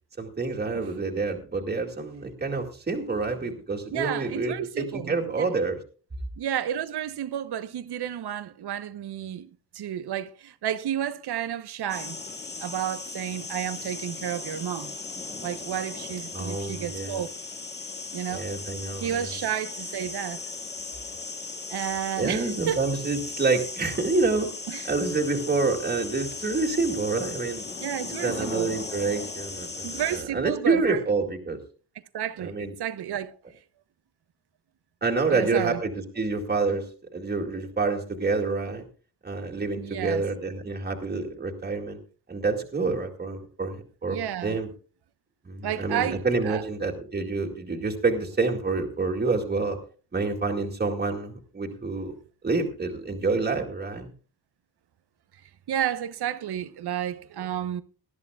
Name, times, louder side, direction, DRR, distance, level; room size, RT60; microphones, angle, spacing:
voice 1, 0.2-5.8 16.3-17.2 18.3-19.3 22.2-24.5 24.8-27.6 28.1-31.6 32.4-32.7 35.0-38.8 39.2-42.0 42.3-44.7 45.4-49.8 50.1-52.1 52.4-54.1, right 3 dB, 25° right, 2.3 m, -28 dB
voice 2, 3.9-5.5 6.4-9.5 9.7-12.2 12.6-14.9 15.4-17.3 18.1-18.5 19.0-20.4 21.7-22.8 24.7-24.9 27.8-28.7 29.8-31.0 32.1-33.3 35.3-35.8 39.8-40.2 44.1-44.6 45.6-46.6 55.7-57.8, right 10 dB, 80° right, 1.0 m, -31 dB
sound 1, 11.9-30.2, left 4 dB, 25° left, 1.8 m, -37 dB
19.0 x 13.5 x 2.4 m
wide cardioid pair, 155°, 38 cm